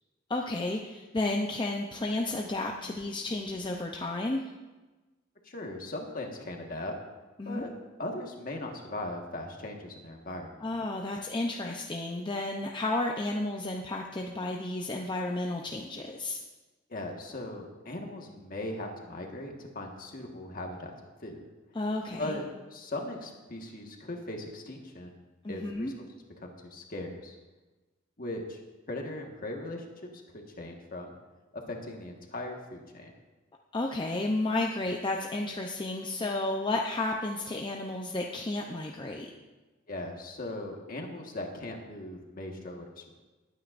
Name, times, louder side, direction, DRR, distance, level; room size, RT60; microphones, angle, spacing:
voice 1, 0.3-4.4 7.4-7.7 10.6-16.4 21.7-22.4 25.4-25.9 33.7-39.3, left 2 dB, 25° left, 0 dB, 0.6 m, -32 dB
voice 2, 5.4-6.9 7.4-7.7 8.0-10.7 16.9-20.9 21.2-21.5 22.2-25.2 25.5-25.9 26.4-27.3 28.2-28.6 28.9-31.1 31.7-33.1 39.9-43.2, left 1 dB, 45° left, 2 dB, 1.6 m, -39 dB
20.5 x 9.3 x 2.6 m, 1.2 s
head